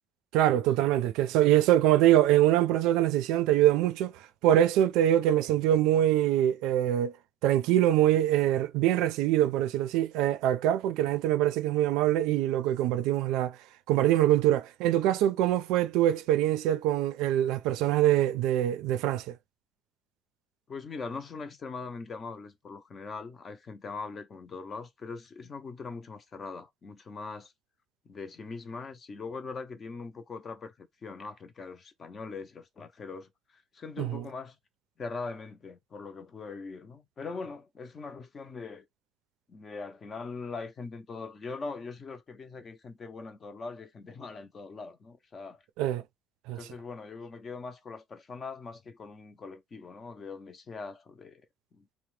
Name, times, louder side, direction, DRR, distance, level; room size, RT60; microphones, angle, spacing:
voice 1, 0.3-4.1 4.4-7.1 7.4-13.6 13.9-19.3 34.0-34.2 45.8-46.0 46.5-46.6, right 12 dB, 75° right, 0.4 m, -24 dB
voice 2, 20.7-27.5 28.1-34.6 35.0-38.8 39.5-45.6 46.5-51.5 51.7-51.9, left 4 dB, 25° left, 0.5 m, -41 dB
2.8 x 2.1 x 3.1 m
cardioid pair, 165°, 0 cm